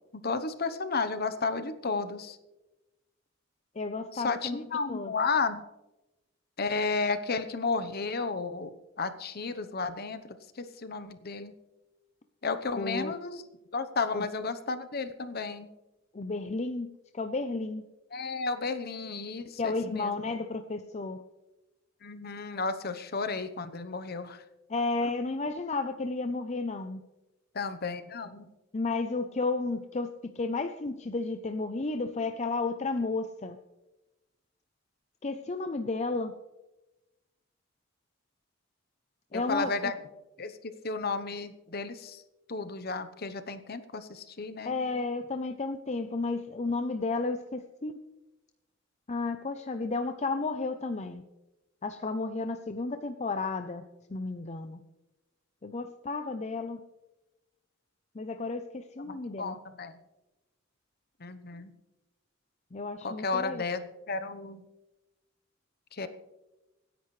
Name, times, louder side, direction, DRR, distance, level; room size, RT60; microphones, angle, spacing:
voice 1, 0.1-2.4 4.1-5.6 6.6-8.7 9.0-11.5 12.4-13.4 13.7-15.7 18.1-20.1 22.0-24.4 25.0-25.1 27.5-28.5 39.3-39.9 40.4-42.2 42.5-44.7 59.1-60.0 61.2-61.7 63.0-63.8 64.1-64.6 65.9-66.1, left 4 dB, 50° left, 11 dB, 0.9 m, -33 dB
voice 2, 3.7-4.6 4.9-5.1 12.7-13.1 14.1-14.3 16.1-17.9 19.6-21.2 24.7-27.0 28.7-33.6 35.2-36.3 39.3-39.7 44.6-48.0 49.1-51.2 51.8-53.8 54.1-54.8 55.6-56.8 58.1-59.6 62.7-63.6, left 3 dB, 35° left, 7 dB, 0.6 m, -32 dB
25.0 x 10.5 x 3.2 m, 1.0 s
head